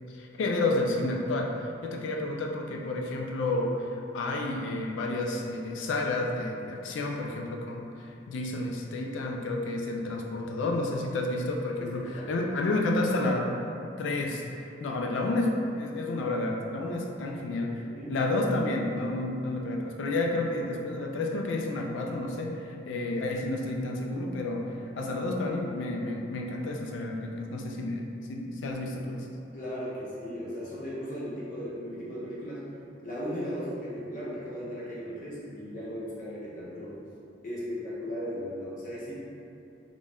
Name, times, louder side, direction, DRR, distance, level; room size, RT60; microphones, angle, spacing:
voice 1, 0.1-13.6 14.0-14.4 14.8-17.8 18.1-29.3, left 2 dB, 85° left, 1 dB, 0.4 m, -30 dB
voice 2, 10.4-10.7 11.8-12.5 17.6-18.2 29.5-32.6 33.0-37.0 37.4-39.1, equal, 45° left, -7 dB, 0.7 m, -37 dB
2.5 x 2.2 x 3.4 m, 2.6 s
head